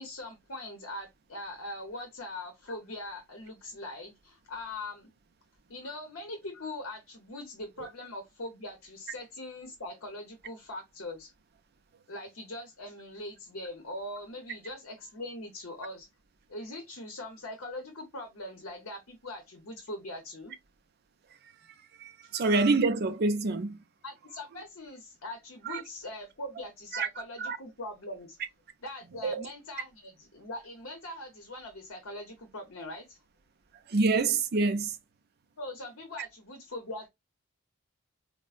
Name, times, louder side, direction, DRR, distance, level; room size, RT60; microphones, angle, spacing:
voice 1, 0.0-5.1 5.7-11.3 12.1-16.1 16.5-20.5 22.2-22.3 24.0-28.4 28.8-33.2 35.6-37.1, left 1 dB, 65° left, 0.8 m, -41 dB
voice 2, 22.0-23.8 25.7-25.8 26.9-27.1 27.4-27.6 29.2-29.4 33.9-34.9, right 3 dB, 45° right, 0.5 m, -26 dB
4.5 x 2.0 x 2.4 m
head